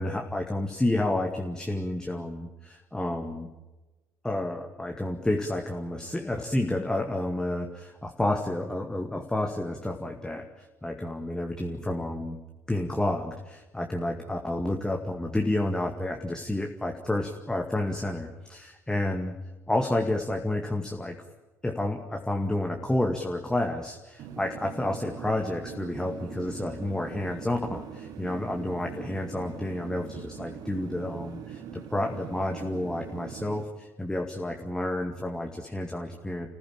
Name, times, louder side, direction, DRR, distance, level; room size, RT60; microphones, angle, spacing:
voice 1, 0.0-3.5 4.2-12.4 12.7-19.3 19.7-21.2 21.6-36.5, left 1 dB, 10° left, 2 dB, 2.1 m, -30 dB
sound 1, 24.2-33.6, right 8 dB, 50° right, 1.7 m, -42 dB
30.0 x 16.0 x 8.9 m, 1.1 s
figure-of-eight pair, 55°, 8 cm